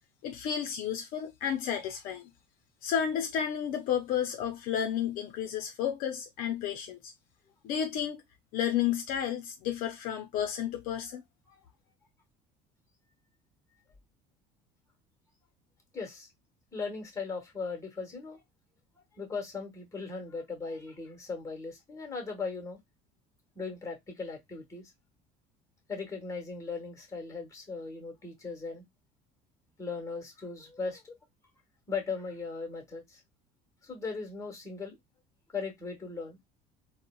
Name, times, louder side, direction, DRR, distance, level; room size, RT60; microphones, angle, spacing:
voice 1, 0.2-2.3 2.8-7.1 7.6-8.2 8.5-11.2, left 9 dB, 65° left, 0.5 m, -32 dB
voice 2, 15.9-16.3 16.7-18.4 19.2-22.8 23.5-24.9 25.9-28.8 29.8-31.2 31.9-33.2 33.8-35.0 35.5-36.4, left 4 dB, 20° left, 1.2 m, -38 dB
3.8 x 2.1 x 2.2 m
supercardioid pair, 110°, 16 cm